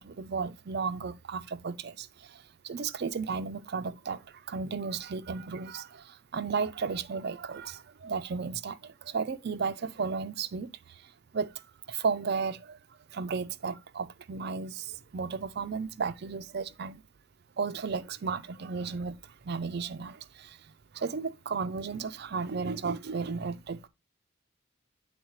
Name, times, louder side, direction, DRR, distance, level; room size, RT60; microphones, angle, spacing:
voice 1, 0.0-12.8 13.1-17.0 17.6-23.9, right 5 dB, 45° right, 0.4 m, -34 dB
9.3 x 4.0 x 3.1 m
head